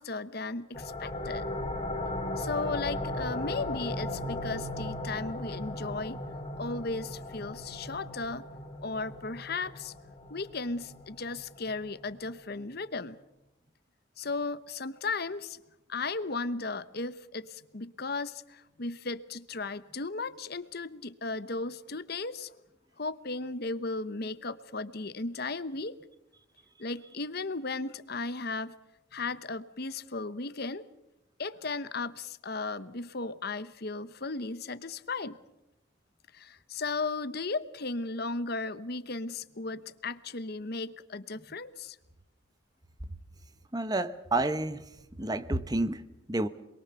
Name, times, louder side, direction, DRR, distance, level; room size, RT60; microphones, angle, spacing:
voice 1, 0.0-1.4 2.4-6.2 6.6-8.4 8.8-9.9 10.3-13.2 14.2-15.6 15.9-22.5 23.0-25.9 26.8-28.7 29.1-30.9 31.4-35.4 36.3-42.0, left 3 dB, 50° left, 1.0 m, -35 dB
sound 1, 0.7-12.1, left 1 dB, 20° left, 3.8 m, -37 dB
voice 2, 43.7-44.8 45.2-46.0 46.3-46.5, right 2 dB, 20° right, 0.8 m, -29 dB
28.0 x 22.0 x 6.9 m
head